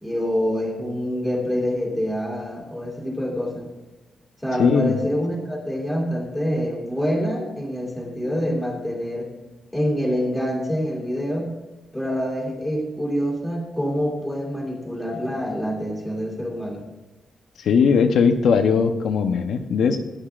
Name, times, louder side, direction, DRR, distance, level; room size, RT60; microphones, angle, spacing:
voice 1, 0.0-3.7 4.4-9.3 9.7-11.5 11.9-16.8, equal, 5° left, -2 dB, 2.5 m, -26 dB
voice 2, 4.6-5.0 17.6-20.0, left 6 dB, 80° left, 5 dB, 0.8 m, -19 dB
16.0 x 10.5 x 2.5 m, 1.1 s
wide cardioid pair, 170°, 0 cm